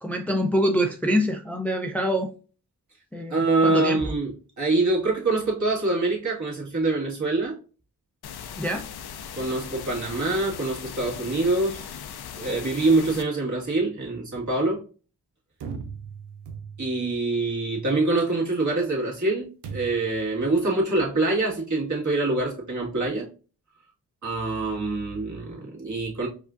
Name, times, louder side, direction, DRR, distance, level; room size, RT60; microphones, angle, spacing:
voice 1, 0.0-2.3 3.1-4.0 8.6-8.9, equal, 5° left, 4 dB, 0.4 m, -25 dB
voice 2, 3.3-7.5 9.4-12.0 12.4-14.8 16.8-23.3 24.2-26.3, right 2 dB, 45° right, -4 dB, 1.8 m, -25 dB
sound 1, 8.2-13.2, left 8 dB, 70° left, 0.5 m, -39 dB
sound 2, 15.6-17.1 19.6-20.2, right 6 dB, 90° right, 0.6 m, -38 dB
4.8 x 2.4 x 2.5 m, 0.37 s
cardioid pair, 50°, 39 cm